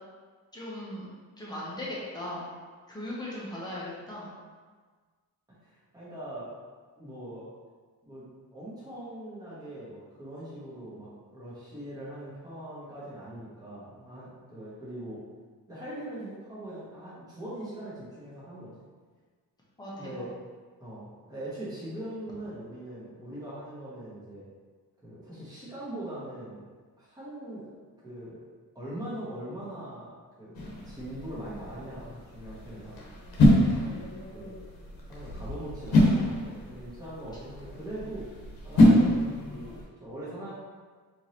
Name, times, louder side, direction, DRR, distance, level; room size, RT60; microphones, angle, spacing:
voice 1, 0.5-1.1 1.4-2.5 2.9-4.3 19.8-20.3 33.8-34.6, left 1 dB, 10° left, -7 dB, 0.9 m, -39 dB
voice 2, 5.6-6.5 7.0-7.5 8.0-15.2 15.7-18.7 20.0-20.3 20.8-24.4 25.0-26.6 27.0-27.7 28.0-28.4 28.7-30.1 30.4-30.6 30.8-33.0 33.7-33.9 34.3-34.5 35.1-38.3 38.6-40.5, right 1 dB, 10° right, -10 dB, 1.2 m, -41 dB
sound 1, 30.5-39.8, left 1 dB, 75° left, 1.0 m, -26 dB
4.5 x 3.2 x 2.9 m, 1.5 s
wide cardioid pair, 165°, 37 cm